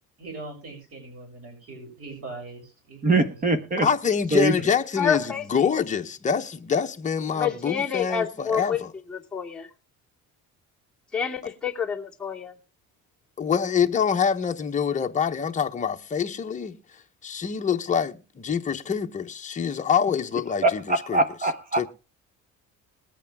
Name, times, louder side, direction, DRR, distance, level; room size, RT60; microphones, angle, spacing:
voice 1, 0.2-3.6, right 2 dB, 50° right, 7.2 m, -41 dB
voice 2, 3.0-3.9 4.3-4.6 20.6-21.9, right 2 dB, 25° right, 1.3 m, -23 dB
voice 3, 3.8-8.9 13.4-16.8 17.2-20.8 21.1-21.2 21.8-21.9, left 7 dB, 25° left, 1.0 m, -25 dB
voice 4, 5.0-5.4 7.3-8.8 9.1-9.7 11.1-12.5, left 7 dB, ahead, 2.7 m, -28 dB
20.5 x 8.4 x 3.5 m
cardioid pair, 135°, 31 cm